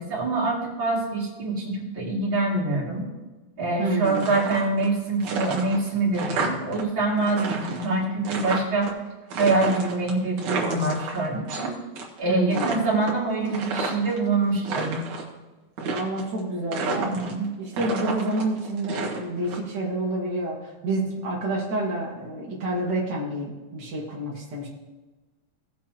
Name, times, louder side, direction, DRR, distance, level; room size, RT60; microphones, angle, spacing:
voice 1, 0.0-3.0 3.6-8.9 9.4-11.8 12.2-15.0 16.9-17.5, right 2 dB, 35° right, -4 dB, 2.2 m, -25 dB
voice 2, 3.8-4.3 12.3-12.7 15.8-17.1 17.6-24.7, right 2 dB, 90° right, -4 dB, 0.9 m, -28 dB
sound 1, 4.0-4.9 5.2-6.8 7.1-8.9 9.3-11.7 12.0-12.2 12.5-14.2 14.5-15.3 15.8-16.4 16.7-17.5 17.7-19.6, right 4 dB, 60° right, 2.0 m, -31 dB
17.5 x 7.3 x 2.9 m, 1.2 s
omnidirectional pair, 5.5 m